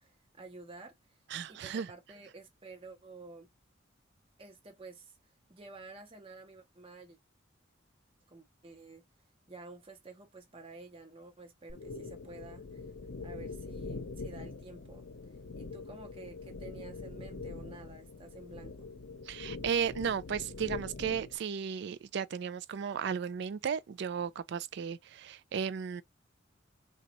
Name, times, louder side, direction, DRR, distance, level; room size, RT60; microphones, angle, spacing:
voice 1, 0.0-1.2 1.5-3.5 4.4-5.2 5.5-7.2 8.3-9.0 9.5-12.9 13.2-15.1 15.6-18.7, right 3 dB, 30° right, 0.9 m, -50 dB
voice 2, 1.3-1.9 19.3-26.0, right 7 dB, 60° right, 0.4 m, -35 dB
sound 1, 11.7-21.4, left 3 dB, 80° left, 0.7 m, -43 dB
3.9 x 2.3 x 2.9 m
head